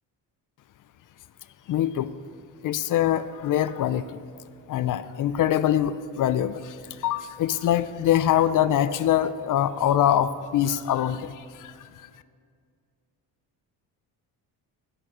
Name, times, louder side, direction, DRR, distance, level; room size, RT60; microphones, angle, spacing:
voice 1, 1.7-2.1 2.6-4.2 4.7-12.1, left 11 dB, 50° left, 15 dB, 0.4 m, -24 dB
8.6 x 8.1 x 6.2 m, 2.2 s
cardioid pair, 100°, 41 cm